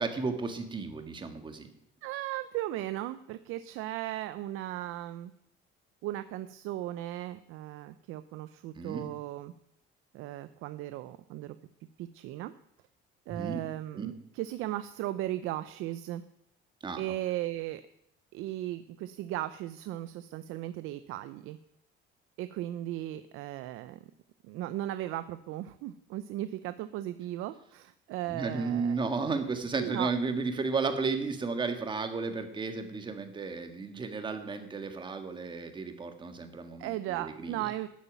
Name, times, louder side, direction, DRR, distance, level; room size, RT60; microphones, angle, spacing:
voice 1, 0.0-1.7 8.8-9.1 13.3-13.6 13.9-14.1 16.8-17.0 28.3-37.6, right 4 dB, 20° right, 7 dB, 1.7 m, -33 dB
voice 2, 2.0-5.3 6.0-9.5 10.1-11.6 12.0-12.5 13.3-16.2 17.0-17.8 18.3-21.6 22.4-24.0 24.4-29.0 29.7-30.1 36.8-37.9, right 14 dB, 75° right, 13 dB, 0.7 m, -36 dB
13.0 x 8.4 x 9.2 m, 0.78 s
cardioid pair, 155°, 21 cm